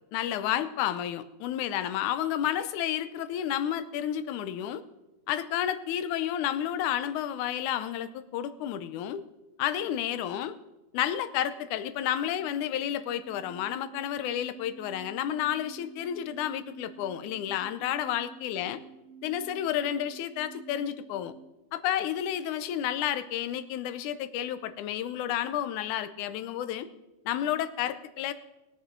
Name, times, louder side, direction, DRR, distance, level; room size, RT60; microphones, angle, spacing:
voice 1, 0.1-4.8 5.3-9.2 9.6-10.5 10.9-18.8 19.2-21.3 21.7-26.9 27.3-28.3, left 11 dB, 85° left, 12 dB, 2.2 m, -31 dB
sound 1, 11.9-21.5, right 5 dB, 60° right, 2.1 m, -50 dB
20.0 x 8.6 x 4.5 m, 1.0 s
omnidirectional pair, 3.5 m